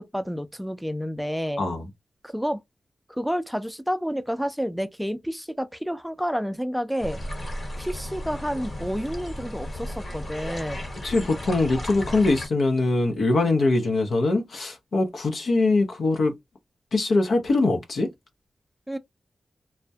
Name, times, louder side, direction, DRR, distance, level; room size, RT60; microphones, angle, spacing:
voice 1, 0.0-1.6 2.2-2.6 3.1-7.2 7.8-10.8 18.9-19.0, equal, ahead, 0.4 m, -29 dB
voice 2, 1.6-1.9 11.0-16.3 16.9-18.1, left 2 dB, 80° left, 0.6 m, -22 dB
sound 1, 7.0-12.5, left 1 dB, 50° left, 1.1 m, -35 dB
2.2 x 2.1 x 2.7 m
cardioid pair, 55°, 0 cm